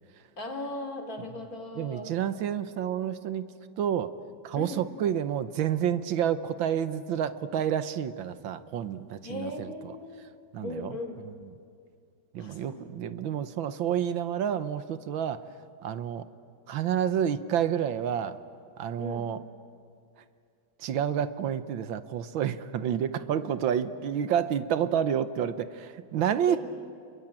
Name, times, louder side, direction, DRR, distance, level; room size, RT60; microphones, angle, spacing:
voice 1, 0.4-2.2 4.6-4.8 9.2-10.2 10.6-11.3 12.4-12.8 19.0-19.3 26.5-26.6, left 2 dB, 45° left, 5 dB, 3.2 m, -38 dB
voice 2, 1.8-3.4 3.8-4.1 4.4-9.9 10.5-10.9 12.3-15.5 15.8-16.2 16.7-18.4 18.8-19.4 20.8-26.6, right 9 dB, 80° right, 12 dB, 1.7 m, -29 dB
28.0 x 22.0 x 8.9 m, 2.4 s
omnidirectional pair, 2.1 m